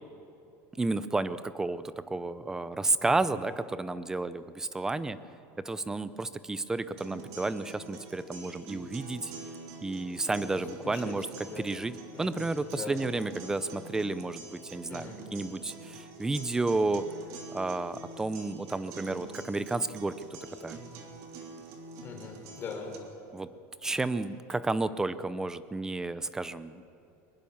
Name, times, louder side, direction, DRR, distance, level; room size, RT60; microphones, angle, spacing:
voice 1, 0.8-5.2 5.6-9.3 9.8-11.3 11.6-11.9 12.2-17.1 17.5-20.2 20.6-20.8 23.3-23.5 23.8-26.8, right 3 dB, 5° right, 14 dB, 0.6 m, -31 dB
sound 1, 7.0-23.0, right 3 dB, 45° right, 3.1 m, -46 dB
voice 2, 10.3-11.1 11.4-11.7 12.1-12.4 12.7-13.0 14.9-15.2 22.0-22.9, left 5 dB, 25° left, 0 dB, 4.9 m, -42 dB
23.5 x 21.0 x 7.2 m, 2.7 s
cardioid pair, 170°, 8 cm